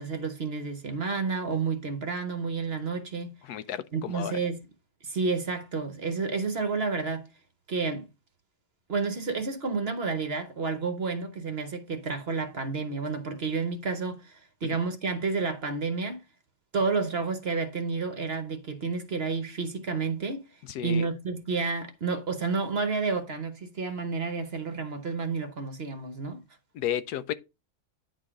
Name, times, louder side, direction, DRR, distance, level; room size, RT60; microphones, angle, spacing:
voice 1, 0.0-3.3 3.9-4.6 5.0-7.3 7.7-8.1 8.9-16.2 16.7-20.4 20.8-26.4, right 4 dB, 45° right, 1.0 m, -30 dB
voice 2, 3.4-4.4 14.6-14.8 20.6-21.1 26.7-27.3, left 10 dB, 80° left, 1.2 m, -33 dB
9.7 x 4.9 x 3.6 m
omnidirectional pair, 1.7 m